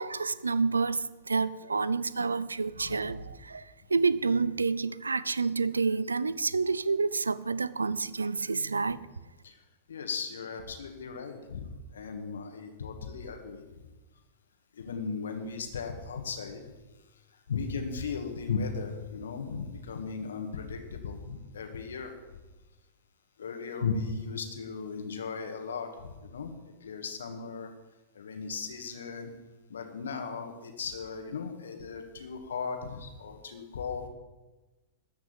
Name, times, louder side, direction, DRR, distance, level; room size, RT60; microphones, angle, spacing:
voice 1, 0.0-3.6 3.9-9.0, right 4 dB, 85° right, 0.5 m, -29 dB
voice 2, 2.8-3.3 8.8-9.0 9.4-9.6 9.9-11.7 11.9-13.6 14.7-16.6 17.5-22.1 23.4-26.5 26.8-27.7 28.1-29.3 29.7-34.1, left 5 dB, 70° left, 1.9 m, -36 dB
13.5 x 5.9 x 8.9 m
figure-of-eight pair, 100°, 0 cm